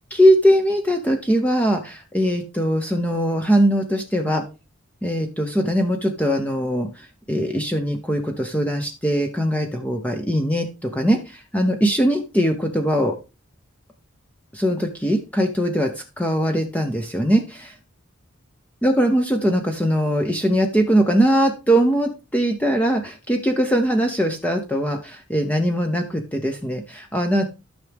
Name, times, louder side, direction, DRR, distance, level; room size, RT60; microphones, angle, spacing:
voice 1, 0.1-4.4 5.0-13.2 14.5-17.8 18.8-27.4, equal, 5° left, 4 dB, 0.8 m, -21 dB
12.5 x 6.1 x 3.5 m, 0.29 s
head